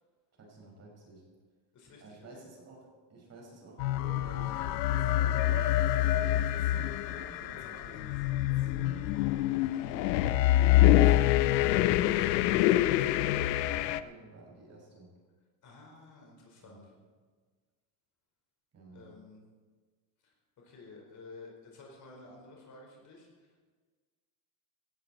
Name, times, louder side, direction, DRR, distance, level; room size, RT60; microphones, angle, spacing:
voice 1, 0.4-1.2 2.0-4.6 5.0-9.1 9.7-10.2 10.6-15.1 16.6-16.8 18.7-19.1, right 2 dB, 30° right, 0 dB, 5.6 m, -51 dB
voice 2, 1.7-2.4 6.9-7.0 15.6-16.9 18.9-19.4 20.2-23.6, left 3 dB, 40° left, 0 dB, 4.8 m, -52 dB
sound 1, 3.8-14.0, left 13 dB, 85° left, 0.8 m, -26 dB
17.5 x 14.0 x 4.3 m, 1.5 s
supercardioid pair, 125°, 48 cm